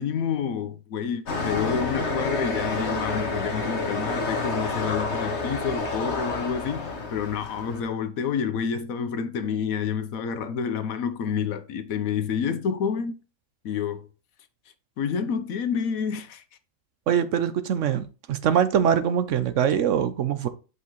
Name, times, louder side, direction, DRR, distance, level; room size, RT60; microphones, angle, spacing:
voice 1, 0.0-13.2 13.6-14.1 15.0-16.4, left 7 dB, 80° left, 1.2 m, -29 dB
sound 1, 1.3-7.8, left 3 dB, 55° left, 1.3 m, -29 dB
voice 2, 17.1-20.5, right 8 dB, 65° right, 1.0 m, -23 dB
8.3 x 4.7 x 3.1 m
omnidirectional pair, 1.5 m